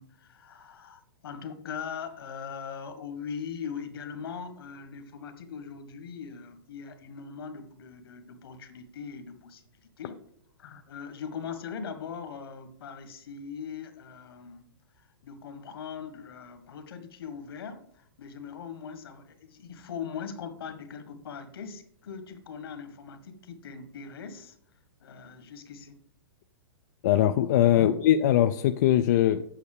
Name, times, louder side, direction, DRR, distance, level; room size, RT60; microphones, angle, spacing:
voice 1, 0.0-10.2 10.6-14.6 15.0-24.5 25.0-26.0 27.7-27.9, left 6 dB, 70° left, 10 dB, 1.5 m, -40 dB
voice 2, 27.0-29.4, left 11 dB, 45° left, 8 dB, 0.4 m, -21 dB
8.5 x 5.4 x 6.7 m, 0.68 s
hypercardioid pair, 155°, 13 cm